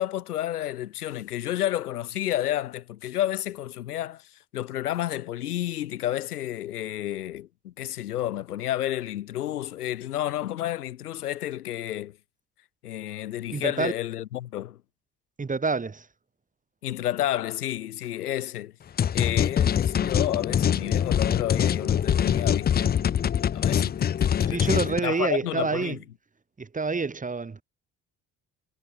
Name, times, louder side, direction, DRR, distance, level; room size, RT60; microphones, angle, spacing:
voice 1, 0.0-4.3 4.5-12.2 12.8-14.8 16.8-18.7 19.1-22.9 23.5-26.0, left 13 dB, 85° left, 0.7 m, -31 dB
voice 2, 13.5-13.9 15.4-16.0 24.5-25.9 26.6-27.6, right 4 dB, 15° right, 1.2 m, -27 dB
sound 1, 19.0-25.0, left 9 dB, 20° left, 0.5 m, -24 dB
figure-of-eight pair, 50°, 44 cm